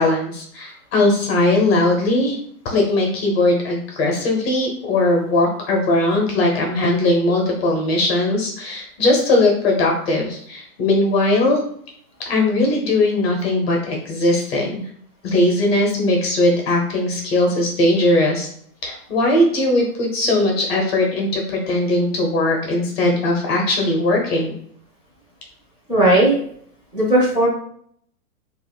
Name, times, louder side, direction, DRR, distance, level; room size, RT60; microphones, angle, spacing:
voice 1, 0.0-2.4 2.6-11.6 12.3-14.9 15.2-18.5 18.8-24.5, left 2 dB, 40° left, 1 dB, 0.9 m, -19 dB
voice 2, 25.9-26.4 26.9-27.5, right 1 dB, 10° right, -8 dB, 1.0 m, -15 dB
5.4 x 2.5 x 2.3 m, 0.64 s
hypercardioid pair, 150°, 47 cm